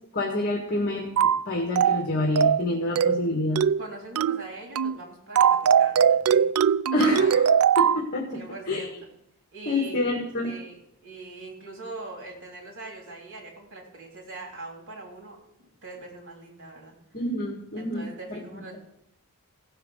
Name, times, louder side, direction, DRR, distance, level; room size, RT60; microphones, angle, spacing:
voice 1, 0.1-3.7 6.9-8.3 8.7-8.8 9.7-10.5 17.1-18.4, left 2 dB, 45° left, 0 dB, 1.9 m, -27 dB
sound 1, 1.2-1.4 1.8-2.0 2.4-2.6 3.0-3.2 3.6-3.8 4.2-4.4 4.8-5.0 5.4-8.0, right 7 dB, 90° right, 0.4 m, -21 dB
voice 2, 3.8-6.5 8.3-9.1 9.5-10.0 10.4-17.0 17.8-18.8, right 2 dB, 60° right, 0 dB, 3.7 m, -42 dB
16.0 x 6.7 x 6.4 m, 0.78 s
head